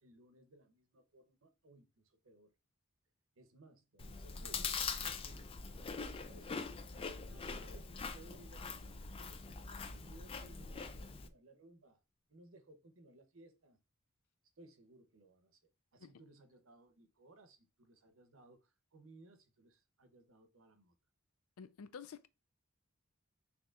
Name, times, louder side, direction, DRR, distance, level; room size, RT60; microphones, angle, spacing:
voice 1, 0.0-2.5 3.4-6.7 7.3-12.0 12.3-13.8 14.6-15.6 15.9-21.0, right 2 dB, 65° right, 0.8 m, -61 dB
Chewing mastication, 4.0-11.3, left 5 dB, 25° left, 0.3 m, -43 dB
voice 2, 21.6-22.3, left 6 dB, 85° left, 0.4 m, -49 dB
6.3 x 2.9 x 2.4 m
head